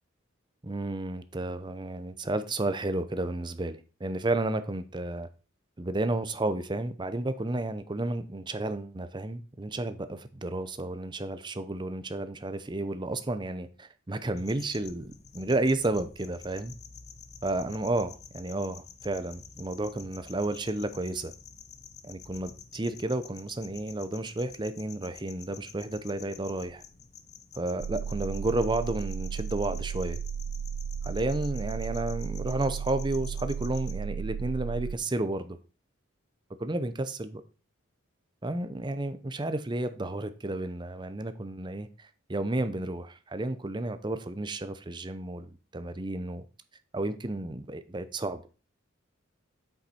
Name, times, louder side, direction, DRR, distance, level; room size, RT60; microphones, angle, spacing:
voice 1, 0.6-5.3 5.8-16.7 17.4-21.3 22.0-26.8 27.6-30.2 31.0-35.6 36.6-37.4 38.4-46.4 46.9-48.5, right 2 dB, 20° right, 0.6 m, -32 dB
sound 1, 14.4-34.0, left 7 dB, 35° left, 0.6 m, -49 dB
sound 2, 27.8-35.0, right 7 dB, 70° right, 0.3 m, -34 dB
8.1 x 5.8 x 4.3 m
head